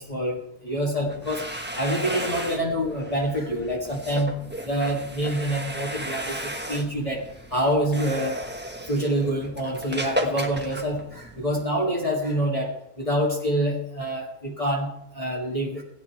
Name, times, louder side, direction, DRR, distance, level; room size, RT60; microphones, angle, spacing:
voice 1, 0.0-4.4 4.6-8.4 8.9-15.8, right 1 dB, 30° left, -4 dB, 1.9 m, -26 dB
sound 1, 1.0-11.6, right 1 dB, 10° right, 1.1 m, -34 dB
16.5 x 10.0 x 4.5 m, 0.81 s
omnidirectional pair, 1.2 m